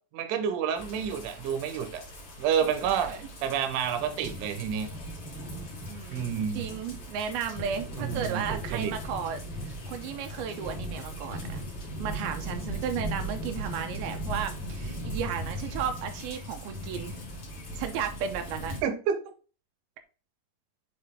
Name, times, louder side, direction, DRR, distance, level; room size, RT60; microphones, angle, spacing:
voice 1, 0.1-2.0 2.4-3.1 3.4-4.9 6.1-6.6 8.0-8.9 18.8-19.2, right 7 dB, 70° right, 7 dB, 2.2 m, -29 dB
sound 1, 0.7-18.8, equal, 40° left, 1.7 m, -38 dB
voice 2, 5.9-9.4 9.9-11.6 12.0-17.2 17.8-18.7, right 7 dB, 90° right, 6 dB, 2.6 m, -34 dB
6.8 x 4.4 x 3.5 m, 0.36 s
omnidirectional pair, 4.3 m